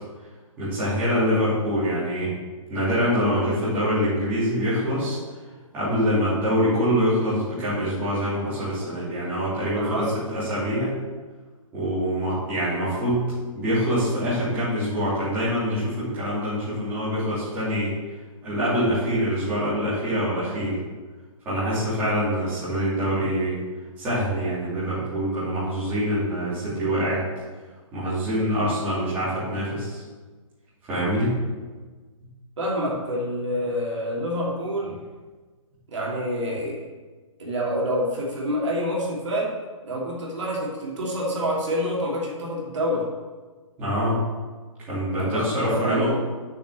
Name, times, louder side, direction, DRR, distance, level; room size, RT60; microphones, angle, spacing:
voice 1, 0.6-2.3 2.7-5.2 5.7-10.9 11.7-13.3 13.5-17.9 18.4-20.8 21.4-23.6 24.0-27.2 27.9-30.0 30.9-31.3 43.8-44.2 44.9-46.1, equal, 10° right, -12 dB, 2.8 m, -25 dB
voice 2, 9.8-10.1 32.6-35.0 35.9-36.9 37.4-39.6 39.8-43.1 45.1-46.2, equal, 60° right, -4 dB, 2.9 m, -27 dB
6.7 x 6.5 x 7.5 m, 1.4 s
hypercardioid pair, 180°, 17 cm